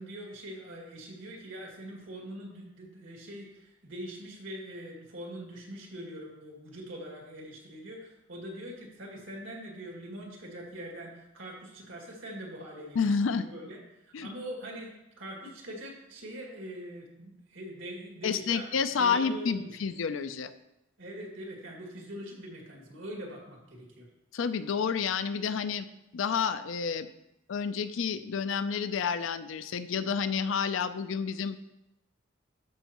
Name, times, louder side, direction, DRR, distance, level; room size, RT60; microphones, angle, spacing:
voice 1, 0.0-18.6 19.0-19.8 21.0-24.1, right 1 dB, 85° right, -1 dB, 2.1 m, -43 dB
voice 2, 13.0-13.5 14.1-14.3 18.2-20.5 24.3-25.9 26.1-27.1 27.5-31.6, left 6 dB, 75° left, 12 dB, 0.4 m, -29 dB
12.5 x 5.3 x 3.0 m, 0.91 s
head